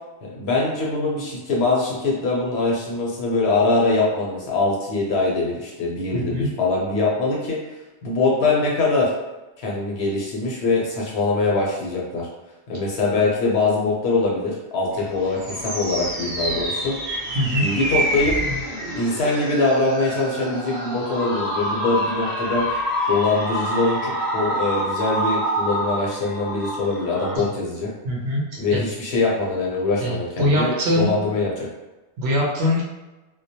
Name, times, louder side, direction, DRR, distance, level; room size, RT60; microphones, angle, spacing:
voice 1, 0.2-7.6 8.0-9.1 9.6-12.3 12.7-16.9 17.6-18.3 19.0-22.6 23.1-27.9 28.6-31.7, left 3 dB, 65° left, -3 dB, 0.8 m, -23 dB
voice 2, 6.1-6.5 17.3-17.7 27.4-27.5 28.0-28.4 28.7-28.8 30.0-31.2 32.2-32.8, left 1 dB, 65° right, -3 dB, 0.8 m, -22 dB
sound 1, 15.0-27.4, equal, 30° right, 0.6 m, -27 dB
2.3 x 2.0 x 2.7 m, 1.1 s
omnidirectional pair, 1.3 m